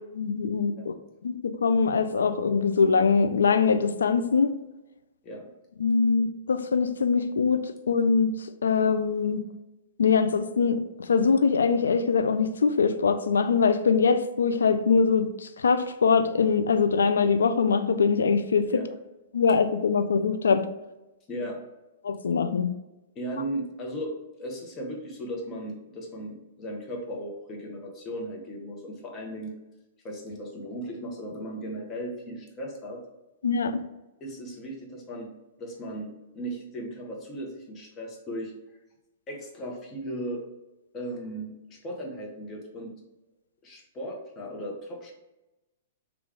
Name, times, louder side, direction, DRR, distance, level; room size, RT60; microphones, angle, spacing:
voice 1, 0.2-0.9 1.2-4.6 5.8-8.3 8.6-9.4 10.0-18.8 19.3-20.7 22.0-22.7 33.4-33.8, left 5 dB, 75° left, 9 dB, 0.3 m, -23 dB
voice 2, 23.1-29.5 30.0-33.0 34.2-35.3 35.6-38.5 39.3-40.4 40.9-42.9 43.6-45.1, right 1 dB, 30° left, 0 dB, 0.9 m, -36 dB
3.3 x 2.3 x 3.5 m, 1.0 s
figure-of-eight pair, 110°, 0 cm